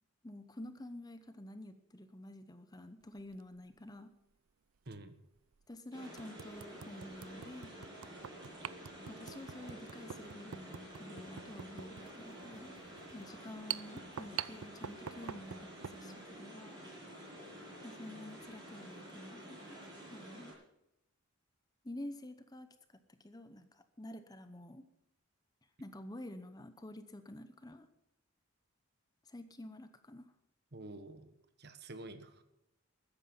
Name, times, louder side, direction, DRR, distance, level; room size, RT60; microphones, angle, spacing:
voice 1, 0.2-4.1 5.7-7.7 9.1-12.7 13.1-16.8 17.8-19.8 20.1-20.5 21.8-24.9 25.8-27.9 29.2-30.3, left 1 dB, 15° left, 10 dB, 0.8 m, -49 dB
sound 1, 3.2-3.4 4.9-5.0 5.5-5.6 6.2-16.0, right 9 dB, 75° right, 0.5 m, -46 dB
voice 2, 4.9-5.2 30.7-31.3 31.6-32.4, right 2 dB, 50° right, 10 dB, 1.3 m, -48 dB
sound 2, 5.9-20.5, right 1 dB, 15° right, 7.3 m, -50 dB
13.5 x 9.9 x 7.1 m, 0.83 s
head